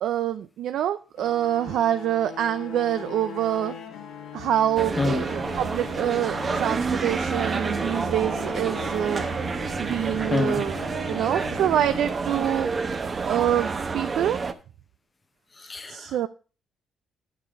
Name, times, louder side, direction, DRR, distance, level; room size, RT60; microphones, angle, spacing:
voice 1, 0.0-3.8 4.3-9.2 9.8-10.8 11.1-12.7 13.2-14.4 15.9-16.3, right 11 dB, 80° right, 0.5 m, -26 dB
sound 1, 1.2-12.6, left 7 dB, 80° left, 2.1 m, -40 dB
sound 2, 4.8-14.5, right 4 dB, 35° right, 1.0 m, -29 dB
voice 2, 10.3-10.6 15.6-16.1, left 3 dB, 25° left, 0.7 m, -26 dB
11.0 x 6.7 x 5.2 m
cardioid pair, 90°, 0 cm